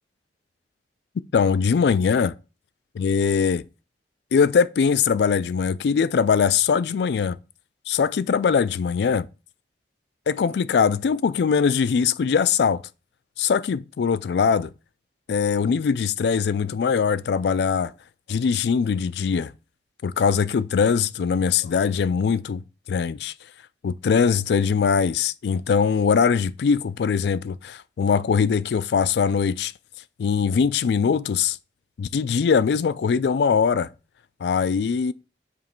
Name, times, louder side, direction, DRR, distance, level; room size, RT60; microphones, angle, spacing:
voice 1, 1.3-2.3 3.0-3.6 4.3-7.4 7.9-9.3 10.3-12.8 13.4-14.7 15.3-17.9 18.3-19.5 20.0-22.6 22.9-23.3 23.8-29.7 30.2-31.6 32.0-33.9 34.4-35.1, left 6 dB, 70° left, 0.3 m, -21 dB
7.3 x 3.1 x 4.4 m
head